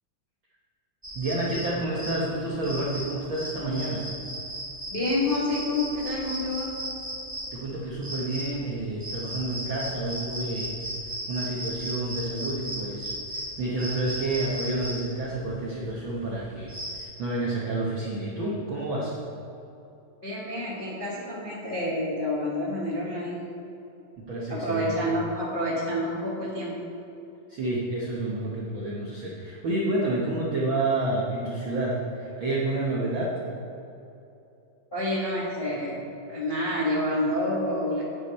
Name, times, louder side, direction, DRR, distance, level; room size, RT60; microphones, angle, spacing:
sound 1, 1.0-17.0, right 1 dB, 10° right, 1.5 m, -36 dB
voice 1, 1.1-4.1 7.5-10.7 11.0-19.2 24.2-24.9 27.5-33.4, right 2 dB, 65° right, -4 dB, 1.2 m, -29 dB
voice 2, 4.9-6.7 20.2-23.4 24.5-26.8 34.9-36.0 36.3-38.0, left 1 dB, 30° left, -6 dB, 0.9 m, -28 dB
10.5 x 9.8 x 4.2 m, 2.9 s
omnidirectional pair, 3.9 m